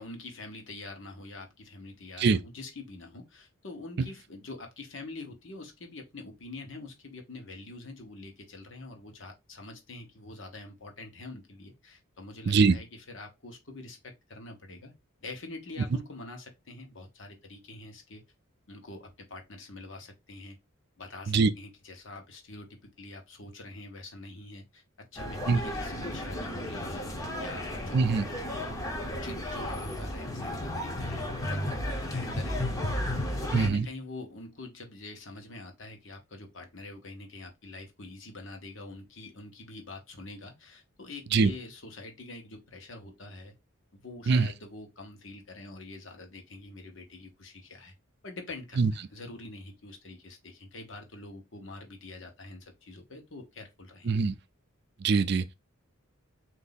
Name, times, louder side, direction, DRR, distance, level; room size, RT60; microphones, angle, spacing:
voice 1, 0.0-14.9 15.2-18.2 18.7-20.6 21.0-24.8 25.1-28.2 29.1-32.7 33.1-43.5 43.9-47.9 48.2-54.1, left 2 dB, 60° left, 1.1 m, -45 dB
voice 2, 12.5-12.8 21.3-21.5 25.5-25.6 27.9-28.3 33.5-33.9 41.3-41.5 44.3-44.5 48.8-48.9 54.1-54.3 55.0-55.5, right 4 dB, 50° right, 0.4 m, -23 dB
sound 1, 25.2-33.7, left 1 dB, 15° left, 0.7 m, -33 dB
3.9 x 2.7 x 4.0 m
head